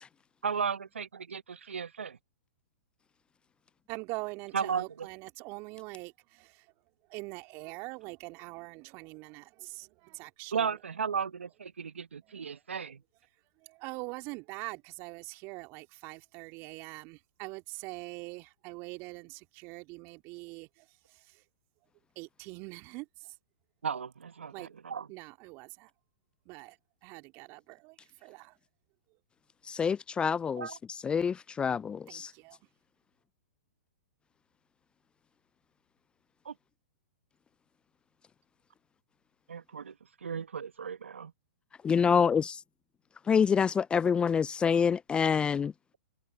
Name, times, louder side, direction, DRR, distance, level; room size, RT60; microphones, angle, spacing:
voice 1, 0.4-2.2 4.5-5.1 10.5-13.0 23.8-25.1 30.6-30.8 36.5-36.6 39.5-39.9 40.2-41.3, right 6 dB, 80° right, 1.7 m, -35 dB
voice 2, 3.9-6.7 7.1-10.8 12.3-12.6 13.6-21.4 22.2-23.4 24.5-24.7 25.1-25.9 26.5-28.6 32.1-32.6, right 25 dB, 40° right, 2.3 m, -44 dB
voice 3, 29.7-30.7 31.0-32.3 41.8-42.6 43.3-45.7, left 6 dB, 15° left, 0.4 m, -26 dB
hypercardioid pair, 115°, 7 cm